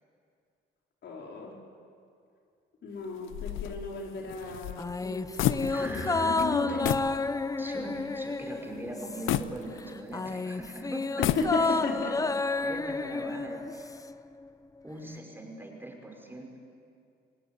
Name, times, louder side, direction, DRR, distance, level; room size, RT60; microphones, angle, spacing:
voice 1, 1.0-1.6 2.8-7.0 11.2-12.3, left 3 dB, 65° left, 0 dB, 4.8 m, -34 dB
sound 1, 3.3-6.1 6.4-6.5 6.8-7.2 7.6-7.7 9.3-10.3 11.0-11.9, left 12 dB, 85° left, 0.8 m, -31 dB
sound 2, 4.8-9.5 9.8-14.1 14.4-14.5, left 3 dB, 15° left, 0.7 m, -31 dB
voice 2, 5.6-6.4 7.6-11.3 11.6-11.8 12.6-13.9 14.8-16.6, right 1 dB, 10° right, 1 dB, 5.6 m, -41 dB
sound 3, 5.8-8.1, left 3 dB, 35° left, 2.2 m, -42 dB
28.0 x 18.0 x 9.6 m, 2.4 s
cardioid pair, 90°, 20 cm